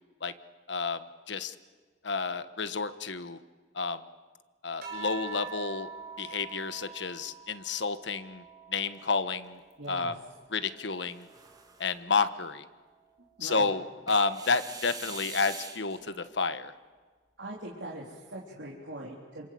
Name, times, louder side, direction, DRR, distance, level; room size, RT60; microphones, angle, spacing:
voice 1, 0.7-1.5 2.0-3.4 3.7-4.0 4.6-5.9 6.2-8.4 8.7-9.6 9.9-10.1 10.5-11.3 11.8-12.6 13.4-16.7, left 4 dB, 75° left, 12 dB, 1.3 m, -30 dB
sound 1, 4.8-9.6 10.1-11.8 13.0-13.5, right 6 dB, 55° right, 6.6 m, -46 dB
sound 2, 9.0-9.9 10.9-12.0 14.1-16.1, right 4 dB, 20° right, 2.3 m, -44 dB
voice 2, 9.8-10.1 13.4-13.8 17.4-19.5, right 1 dB, 85° right, -3 dB, 3.6 m, -41 dB
28.5 x 26.5 x 7.9 m, 1.5 s
head